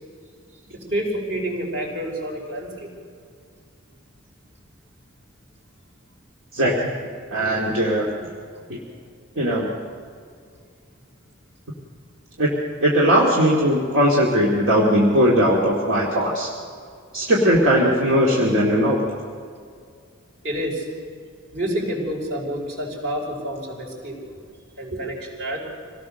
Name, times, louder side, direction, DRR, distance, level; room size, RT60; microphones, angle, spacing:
voice 1, 0.6-2.9 20.4-20.9 21.5-24.2 24.8-25.6, right 1 dB, 60° right, 0 dB, 5.3 m, -28 dB
voice 2, 6.5-6.9 7.3-8.1 9.4-9.7 12.4-12.5 12.8-16.5 17.1-19.0, equal, 80° right, -4 dB, 2.4 m, -19 dB
26.5 x 18.0 x 6.6 m, 2.2 s
head